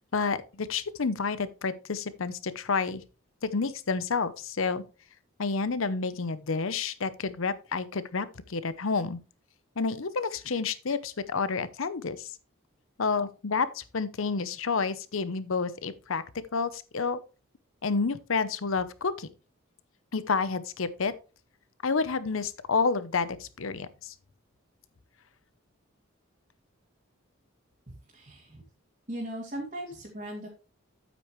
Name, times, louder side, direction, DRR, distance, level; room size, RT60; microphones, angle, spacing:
voice 1, 0.1-3.0 3.4-4.8 5.4-9.2 9.8-12.3 13.0-16.2 16.5-17.2 17.8-19.3 20.1-21.1 21.8-24.1, left 4 dB, 75° left, 0.7 m, -29 dB
voice 2, 27.9-28.6 29.1-30.5, right 1 dB, 40° right, 2.3 m, -38 dB
8.6 x 8.5 x 3.1 m
head